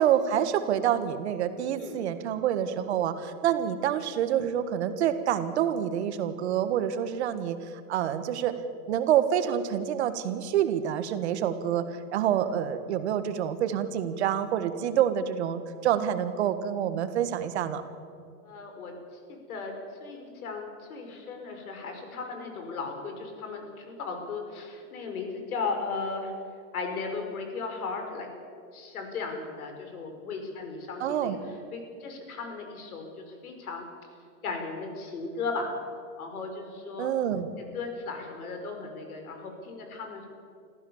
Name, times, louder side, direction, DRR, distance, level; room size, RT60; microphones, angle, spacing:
voice 1, 0.0-7.6 7.9-8.5 8.9-17.8 31.0-31.4 37.0-37.5, right 10 dB, 50° right, 10 dB, 1.7 m, -27 dB
voice 2, 18.4-19.7 20.0-26.3 26.7-28.3 28.7-33.9 34.4-35.8 36.2-37.1 37.6-40.3, left 4 dB, 75° left, 4 dB, 5.5 m, -36 dB
25.5 x 15.0 x 7.3 m, 2.3 s
supercardioid pair, 175°, 43 cm